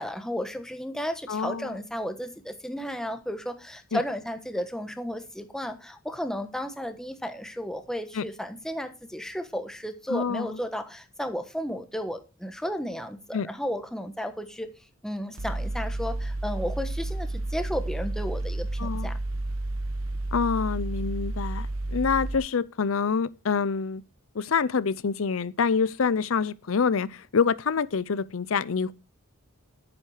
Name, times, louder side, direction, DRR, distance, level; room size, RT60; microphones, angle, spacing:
voice 1, 0.0-14.7 15.0-19.2, equal, 5° left, 1.1 m, -33 dB
voice 2, 1.3-1.7 3.9-4.0 8.1-8.2 10.1-10.6 13.3-13.5 18.8-19.1 20.3-24.0 24.3-28.9, left 5 dB, 70° left, 0.5 m, -26 dB
Mechanical fan, 15.4-22.4, right 2 dB, 75° right, 1.2 m, -31 dB
10.5 x 9.3 x 4.9 m
head